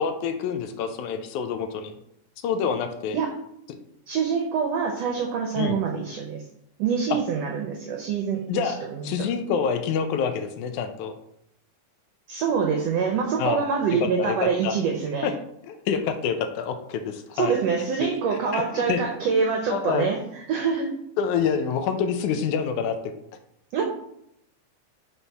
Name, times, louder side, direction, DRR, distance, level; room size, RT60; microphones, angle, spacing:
voice 1, 0.0-2.0 2.4-3.2 5.6-5.8 8.5-11.1 13.4-13.7 14.0-14.8 15.2-15.3 15.7-17.5 18.0-19.0 19.7-20.1 21.2-23.0, left 6 dB, 80° left, 7 dB, 1.9 m, -27 dB
voice 2, 4.1-6.4 6.8-9.1 12.3-15.3 17.3-20.9 23.7-23.8, right 6 dB, 75° right, 2 dB, 1.5 m, -25 dB
5.6 x 4.1 x 4.5 m, 0.77 s
omnidirectional pair, 3.6 m